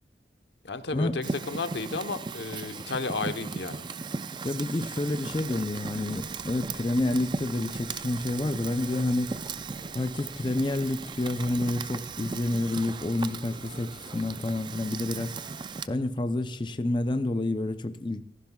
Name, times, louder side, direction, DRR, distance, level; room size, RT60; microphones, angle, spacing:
voice 1, 0.6-3.9, left 3 dB, 85° left, 1.0 m, -33 dB
Fire, 1.2-15.9, right 4 dB, 25° right, 0.4 m, -37 dB
sound 1, 2.4-11.3, left 1 dB, 5° left, 3.2 m, -57 dB
voice 2, 4.4-9.4 9.9-15.4 15.9-18.2, left 2 dB, 25° left, 0.5 m, -29 dB
sound 2, 5.2-15.9, right 1 dB, 50° right, 1.2 m, -52 dB
17.5 x 15.0 x 2.3 m
head